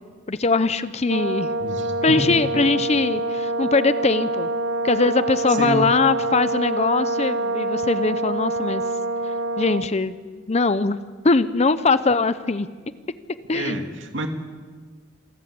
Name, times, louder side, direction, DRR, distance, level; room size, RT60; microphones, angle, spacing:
voice 1, 0.3-1.5 2.0-4.5 4.8-8.8 9.6-12.7 13.5-13.8, left 3 dB, 35° left, 13 dB, 0.7 m, -21 dB
Brass instrument, 1.1-10.0, right 2 dB, 85° right, 1.2 m, -26 dB
voice 2, 1.6-2.2 5.6-5.8 13.5-14.3, equal, 70° right, 4 dB, 2.4 m, -28 dB
27.5 x 14.5 x 8.7 m, 1.5 s
head